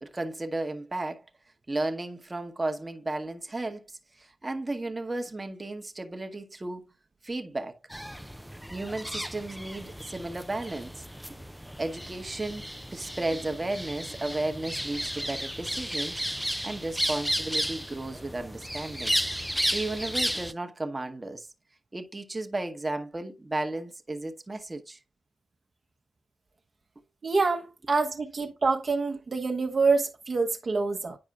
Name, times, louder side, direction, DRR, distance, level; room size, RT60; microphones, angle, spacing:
voice 1, 0.0-1.2 1.7-6.9 7.2-7.8 8.7-11.4 11.8-16.2 16.6-19.2 19.7-21.5 21.9-25.0, right 2 dB, 25° right, 1.0 m, -34 dB
sound 1, 7.9-20.5, equal, ahead, 0.4 m, -33 dB
voice 2, 27.2-31.2, right 4 dB, 50° right, 0.9 m, -26 dB
8.7 x 4.8 x 2.3 m
supercardioid pair, 50°, 0 cm